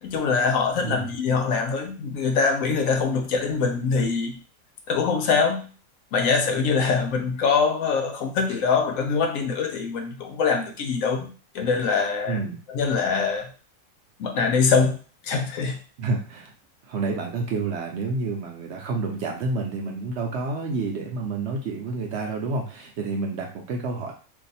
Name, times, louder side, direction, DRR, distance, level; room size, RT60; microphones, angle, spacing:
voice 1, 0.0-4.4 4.9-5.7 6.1-11.3 11.5-12.4 12.7-13.5 14.2-15.0 15.2-15.8, left 5 dB, 75° left, 4 dB, 1.0 m, -23 dB
voice 2, 12.3-12.6 16.0-16.5 16.8-24.1, right 3 dB, 65° right, 1 dB, 0.7 m, -29 dB
2.6 x 2.4 x 4.0 m, 0.38 s
omnidirectional pair, 1.5 m